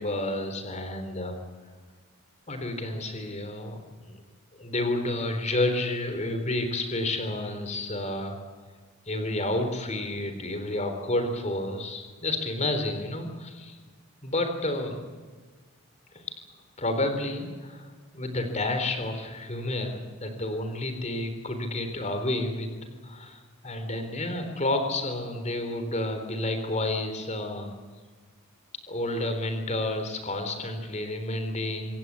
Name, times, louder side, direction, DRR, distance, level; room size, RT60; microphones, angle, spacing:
voice 1, 0.0-1.4 2.5-4.2 4.5-8.4 9.1-13.8 14.2-15.1 16.1-16.4 16.8-17.9 18.1-27.7 28.9-31.9, left 1 dB, 30° left, 7 dB, 3.8 m, -30 dB
27.0 x 16.5 x 8.5 m, 1.5 s
head